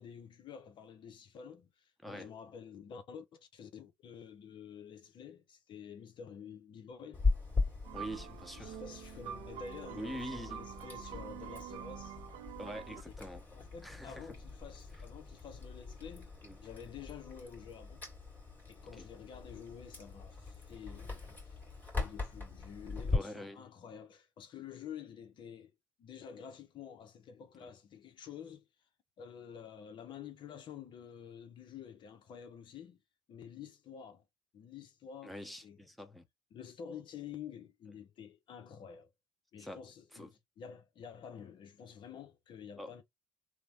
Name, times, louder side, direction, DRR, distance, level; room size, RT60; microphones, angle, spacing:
voice 1, 0.0-7.3 8.6-12.2 12.9-13.0 13.5-16.3 16.6-18.0 18.7-21.6 22.0-25.7 26.0-28.7 29.2-33.0 33.3-34.2 34.5-35.8 36.5-39.1 39.5-43.0, left 7 dB, 50° left, 0.6 m, -49 dB
Chewing mastication, 7.1-23.2, left 3 dB, 15° left, 2.0 m, -40 dB
sound 1, 7.8-13.0, right 11 dB, 70° right, 0.4 m, -46 dB
voice 2, 7.9-8.8 10.0-10.6 12.6-13.4 13.8-14.3 16.4-16.6 19.0-19.1 23.1-23.7 27.6-27.7 35.2-36.2 39.6-39.8 40.1-40.3 42.8-43.0, equal, ahead, 0.9 m, -44 dB
3.1 x 2.1 x 2.7 m
hypercardioid pair, 70°, 10 cm